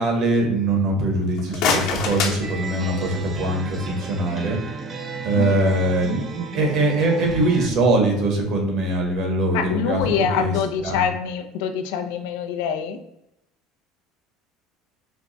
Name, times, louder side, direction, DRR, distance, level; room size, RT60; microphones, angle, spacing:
voice 1, 0.0-4.6 5.2-10.0 10.4-10.5 10.8-11.1, right 2 dB, 45° right, 2 dB, 1.0 m, -22 dB
sound 1, 1.2-3.3, left 5 dB, 60° left, 1.0 m, -26 dB
sound 2, 2.4-7.7, right 4 dB, 20° right, 0.4 m, -34 dB
voice 2, 5.3-5.7 9.5-13.0, left 7 dB, 85° left, 6 dB, 0.5 m, -25 dB
4.4 x 2.2 x 3.9 m, 0.83 s
cardioid pair, 170°, 0 cm